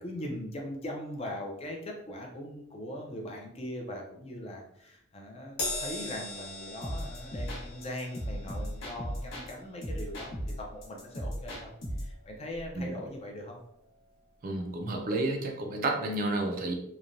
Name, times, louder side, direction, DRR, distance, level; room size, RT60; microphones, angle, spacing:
voice 1, 0.0-11.7 12.0-13.6, left 1 dB, 30° left, 1 dB, 0.5 m, -40 dB
Crash cymbal, 5.6-12.2 12.5-12.8 13.8-13.9, left 2 dB, 50° left, 1.1 m, -41 dB
sound 1, 6.8-9.5 9.8-12.2, equal, 75° left, 0.9 m, -36 dB
voice 2, 14.4-16.7, right 2 dB, 45° right, 2 dB, 0.4 m, -31 dB
3.0 x 2.1 x 2.5 m, 0.74 s
head